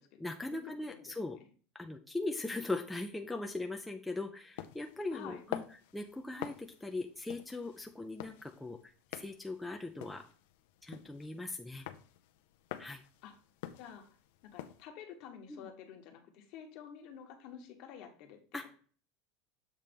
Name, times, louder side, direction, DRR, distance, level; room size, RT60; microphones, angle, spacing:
voice 1, 0.2-1.4 1.7-5.6 5.9-8.8 9.1-10.2 10.8-11.9 12.8-13.0 15.5-15.7 18.5-18.7, left 2 dB, 5° left, 3 dB, 0.4 m, -39 dB
sound 1, 4.6-14.8, left 13 dB, 75° left, 0.6 m, -48 dB
voice 2, 5.1-5.4 13.2-13.3 13.8-14.1 14.5-18.4, left 8 dB, 50° left, 4 dB, 1.2 m, -49 dB
7.4 x 3.2 x 5.2 m, 0.42 s
supercardioid pair, 160°, 0 cm